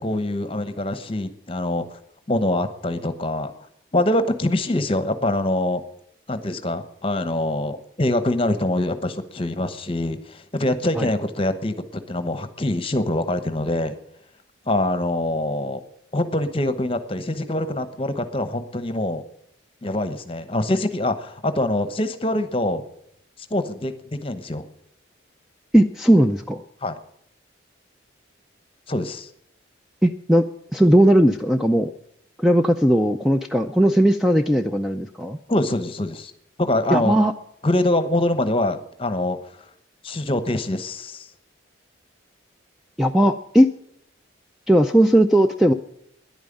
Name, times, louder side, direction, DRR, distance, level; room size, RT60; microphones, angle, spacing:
voice 1, 0.0-2.0 2.3-3.5 3.9-5.8 6.3-13.9 14.7-15.8 16.1-19.2 19.8-22.8 23.5-24.7 26.8-27.0 28.9-29.3 35.5-36.3 36.6-37.2 37.6-39.4 40.0-41.3, left 1 dB, 25° left, 11 dB, 1.0 m, -24 dB
voice 2, 25.7-26.6 30.0-30.5 30.7-31.9 32.4-35.4 36.9-37.3 43.0-43.7 44.7-45.7, right 1 dB, ahead, 5 dB, 0.4 m, -17 dB
10.5 x 9.1 x 10.0 m, 0.72 s
head